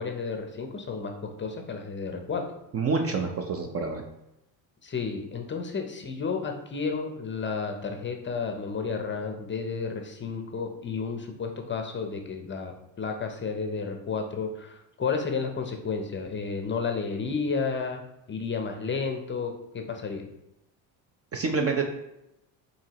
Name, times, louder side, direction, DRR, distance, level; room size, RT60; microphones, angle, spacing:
voice 1, 0.0-2.4 4.8-18.0 18.3-20.3, left 5 dB, 25° left, 4 dB, 0.6 m, -32 dB
voice 2, 2.7-4.0 21.3-21.8, right 4 dB, 30° right, 3 dB, 0.4 m, -27 dB
4.6 x 2.8 x 2.8 m, 0.87 s
supercardioid pair, 75°, 49 cm